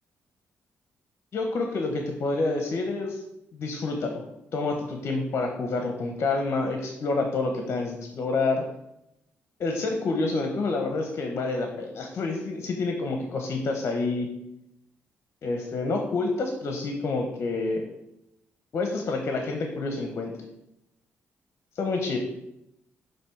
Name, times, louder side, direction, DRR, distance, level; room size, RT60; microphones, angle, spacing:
voice 1, 1.3-3.2 3.5-4.2 4.5-8.6 9.6-14.3 15.4-17.8 18.7-20.3 21.7-22.2, left 3 dB, 60° left, 3 dB, 0.8 m, -28 dB
6.7 x 3.1 x 4.5 m, 0.85 s
cardioid pair, 85°, 5 cm